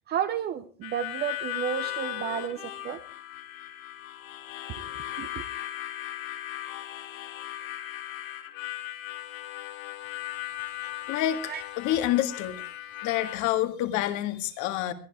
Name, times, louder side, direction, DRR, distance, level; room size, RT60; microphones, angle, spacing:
voice 1, 0.1-3.0 5.2-5.4 11.5-11.6, right 9 dB, 20° right, 11 dB, 0.7 m, -32 dB
Harmonica, 0.8-13.4, left 15 dB, 65° left, 2.7 m, -37 dB
voice 2, 11.1-12.6 13.0-14.9, left 13 dB, 40° left, 9 dB, 1.9 m, -28 dB
22.5 x 14.5 x 3.5 m, 0.37 s
supercardioid pair, 155°, 45 cm